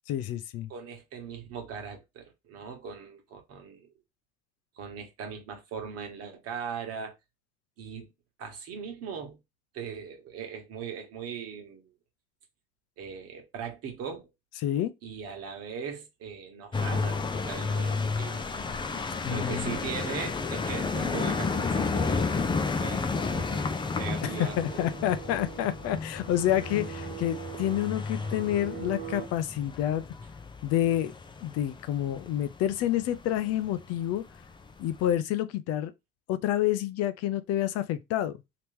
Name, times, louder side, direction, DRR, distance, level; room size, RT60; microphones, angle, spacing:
voice 1, 0.1-0.7 14.6-14.9 19.2-19.7 24.2-30.0 30.6-31.1 31.4-34.2 34.8-35.9 36.3-38.4, left 12 dB, 60° left, 0.5 m, -28 dB
voice 2, 0.7-3.9 4.8-7.1 7.8-8.1 8.4-9.4 9.7-11.9 13.0-14.2 15.0-18.5 19.3-23.7 23.9-24.9, right 6 dB, 55° right, 1.4 m, -39 dB
sound 1, 16.7-35.1, left 4 dB, 15° left, 0.6 m, -32 dB
sound 2, 23.3-29.2, right 12 dB, 75° right, 1.4 m, -43 dB
3.0 x 2.9 x 3.5 m
supercardioid pair, 105°, 29 cm